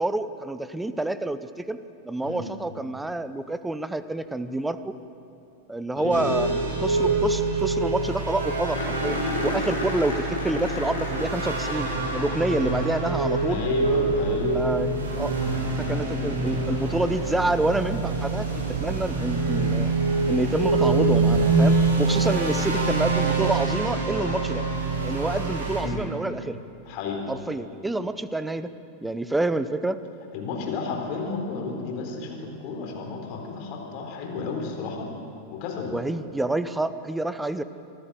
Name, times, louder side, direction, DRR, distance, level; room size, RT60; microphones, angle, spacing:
voice 1, 0.0-1.8 2.0-5.0 5.7-6.5 6.8-13.6 14.5-14.9 15.2-15.4 15.8-19.9 20.3-24.6 25.0-26.6 27.3-28.7 29.0-30.0 35.9-37.6, right 2 dB, 5° right, 13 dB, 0.8 m, -28 dB
voice 2, 5.9-6.8 13.5-14.7 25.8-26.1 26.9-27.2 30.3-35.1 35.5-35.9, left 4 dB, 45° left, 2 dB, 3.9 m, -32 dB
sound 1, 6.1-25.8, right 3 dB, 70° right, 5.3 m, -25 dB
sound 2, 7.3-7.4 7.6-7.7 8.0-8.1 8.7-14.1 16.5-16.6 19.4-19.5, left 2 dB, 75° left, 3.7 m, -33 dB
24.5 x 14.0 x 7.7 m, 2.7 s
figure-of-eight pair, 90°, 0 cm